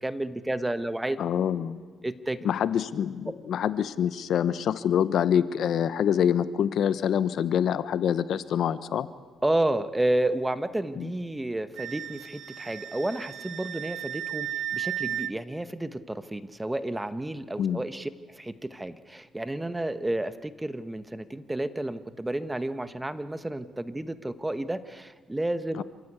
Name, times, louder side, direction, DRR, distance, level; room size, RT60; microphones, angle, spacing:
voice 1, 0.0-1.2 2.0-2.4 9.4-25.8, right 1 dB, 10° right, 12 dB, 1.2 m, -31 dB
voice 2, 1.2-1.8 2.4-9.1 11.0-11.1 17.6-17.8 25.8-25.9, left 9 dB, 70° left, 15 dB, 0.9 m, -26 dB
Wind instrument woodwind instrument, 11.8-15.3, right 12 dB, 80° right, 0.7 m, -34 dB
27.5 x 15.5 x 8.2 m, 1.5 s
cardioid pair, 90°, 0 cm